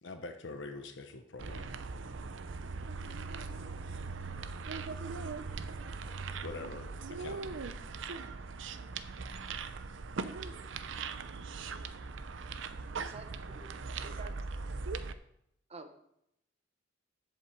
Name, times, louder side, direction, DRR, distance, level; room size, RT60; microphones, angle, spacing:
voice 1, 0.0-1.8 6.4-7.6, left 3 dB, 75° left, 6 dB, 0.9 m, -44 dB
sound 1, 1.4-15.1, right 4 dB, 85° right, 0.6 m, -40 dB
voice 2, 3.0-6.6 7.0-7.1, left 2 dB, 15° left, -7 dB, 2.6 m, -62 dB
voice 3, 13.1-13.7 14.0-14.3 15.7-15.9, right 3 dB, 35° right, 7 dB, 0.9 m, -49 dB
7.9 x 5.2 x 7.5 m, 0.77 s
head